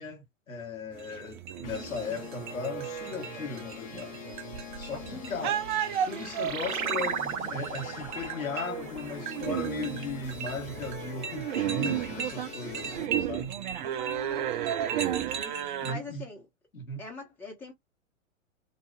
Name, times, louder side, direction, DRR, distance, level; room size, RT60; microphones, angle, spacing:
voice 1, 0.0-4.2 4.8-5.6 6.0-13.6 15.8-16.2 16.7-17.0, left 3 dB, 80° left, 0.9 m, -37 dB
sound 1, 0.9-15.9, right 10 dB, 40° right, 0.5 m, -34 dB
sound 2, 1.6-13.1, left 6 dB, 20° left, 0.6 m, -44 dB
voice 2, 5.1-5.5 13.8-16.5 17.0-17.7, left 4 dB, 5° left, 1.0 m, -44 dB
sound 3, 5.6-10.6, right 7 dB, 90° right, 0.5 m, -36 dB
2.6 x 2.3 x 2.2 m
figure-of-eight pair, 100°, 41 cm